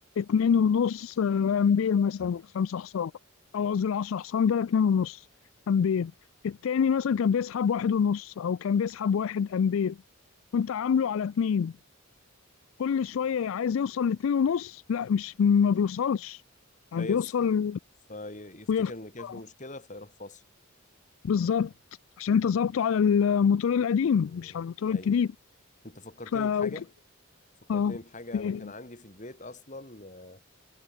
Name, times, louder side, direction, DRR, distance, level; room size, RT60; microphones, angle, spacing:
voice 1, 0.2-3.1 3.5-5.3 5.7-6.1 6.4-10.0 10.5-11.7 12.8-16.4 16.9-17.8 18.7-18.9 19.2-19.3 21.2-21.7 22.2-25.3 26.3-26.8 27.7-28.0 28.3-28.6, left 7 dB, 65° left, 0.3 m, -26 dB
voice 2, 17.0-17.3 18.1-20.4 24.1-24.6 24.9-25.2 25.8-26.9 27.6-30.4, left 2 dB, 35° left, 3.7 m, -43 dB
head